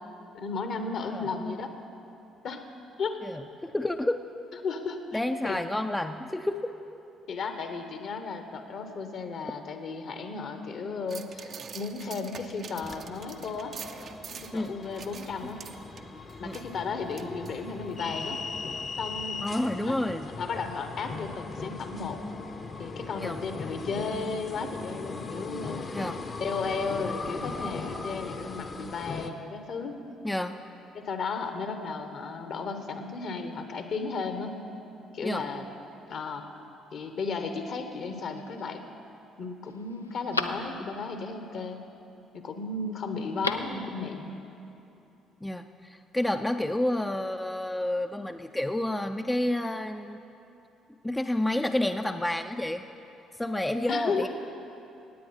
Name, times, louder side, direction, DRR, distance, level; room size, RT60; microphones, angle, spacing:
voice 1, 0.3-1.7 2.4-2.6 3.0-3.2 4.6-5.6 7.3-13.7 14.3-15.6 16.4-18.4 19.0-19.4 19.8-20.0 20.3-22.2 22.8-26.1 26.4-30.0 30.9-34.6 35.1-35.6 36.1-36.4 36.9-38.8 39.4-41.8 42.3-44.3 53.9-54.3, left 4 dB, 55° left, 7 dB, 1.2 m, -34 dB
voice 2, 1.0-1.6 3.2-4.2 5.1-6.7 14.5-14.7 16.4-16.6 19.4-20.3 23.2-23.4 25.9-26.2 30.2-30.6 35.2-35.5 45.4-50.2 51.0-52.8 53.4-54.3, left 1 dB, 10° left, 7 dB, 0.5 m, -30 dB
sound 1, 11.1-18.0 18.4-18.5, right 6 dB, 50° right, 0.6 m, -46 dB
sound 2, 12.8-29.3, left 4 dB, 40° left, 0.9 m, -39 dB
Telephone, 38.0-38.6 39.2-39.3 39.6-41.2 43.2-43.8 44.1-44.2, left 3 dB, 90° left, 0.4 m, -35 dB
17.0 x 9.1 x 5.5 m, 2.8 s
figure-of-eight pair, 50°, 0 cm